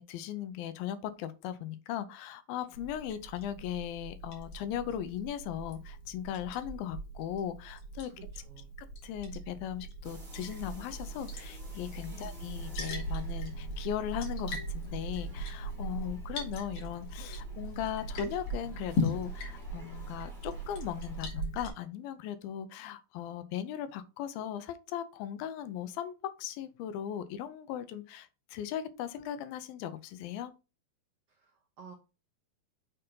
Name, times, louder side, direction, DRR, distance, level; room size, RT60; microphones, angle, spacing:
voice 1, 0.0-8.1 9.0-30.5, left 10 dB, 85° left, 2.5 m, -38 dB
Liquid, 2.7-21.7, right 1 dB, 60° left, 2.6 m, -39 dB
voice 2, 8.1-8.7 12.1-12.3 31.3-31.9, right 6 dB, 85° right, 1.4 m, -53 dB
sound 1, 10.0-21.3, right 1 dB, 25° right, 0.9 m, -56 dB
6.4 x 4.4 x 3.8 m
omnidirectional pair, 4.2 m